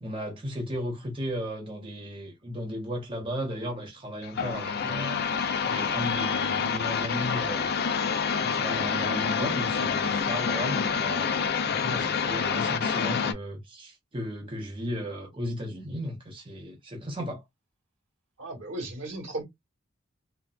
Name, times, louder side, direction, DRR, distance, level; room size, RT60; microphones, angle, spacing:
voice 1, 0.0-5.2 5.7-8.0 8.4-11.3 11.7-17.4, equal, 25° right, 0.6 m, -35 dB
sound 1, 4.2-13.3, left 6 dB, 50° left, 0.4 m, -27 dB
voice 2, 18.4-19.4, right 2 dB, 65° right, 1.2 m, -35 dB
3.9 x 2.1 x 2.3 m
head